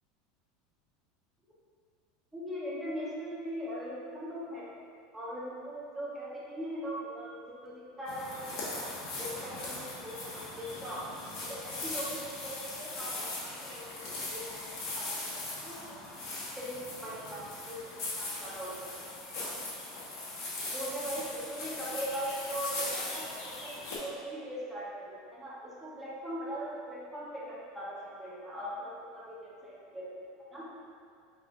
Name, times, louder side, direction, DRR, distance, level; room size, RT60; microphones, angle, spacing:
voice 1, 2.3-4.7 5.1-8.9 9.2-11.0 11.4-14.4 14.8-15.1 15.6-16.1 16.6-17.8 18.1-18.9 20.7-23.7 24.0-30.1 30.5-30.7, equal, 10° right, -7 dB, 1.1 m, -40 dB
sound 1, 8.1-24.0, left 2 dB, 50° left, 1.3 m, -39 dB
4.6 x 3.7 x 2.4 m, 2.5 s
hypercardioid pair, 80°, 0 cm